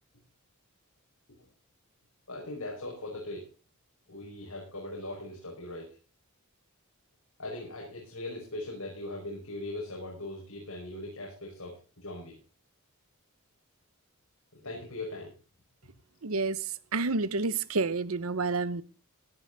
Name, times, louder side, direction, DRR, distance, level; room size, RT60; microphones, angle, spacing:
voice 1, 2.3-3.5 4.1-5.9 7.4-12.3 14.5-15.3, left 2 dB, 80° left, 5.3 m, -40 dB
voice 2, 16.2-16.6 16.9-18.8, right 3 dB, 70° right, 0.9 m, -29 dB
16.5 x 11.0 x 4.0 m
head